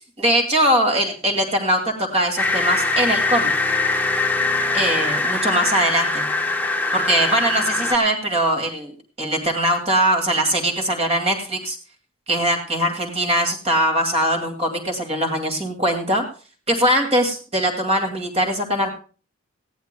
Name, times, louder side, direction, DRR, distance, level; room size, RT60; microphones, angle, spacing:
voice 1, 0.2-3.5 4.7-6.2 6.9-8.9 9.2-11.8 12.3-16.2 16.7-18.9, right 1 dB, 30° right, 3 dB, 2.2 m, -21 dB
sound 1, 2.4-8.0, left 3 dB, 10° left, 1.0 m, -22 dB
19.5 x 15.0 x 2.2 m, 0.37 s
head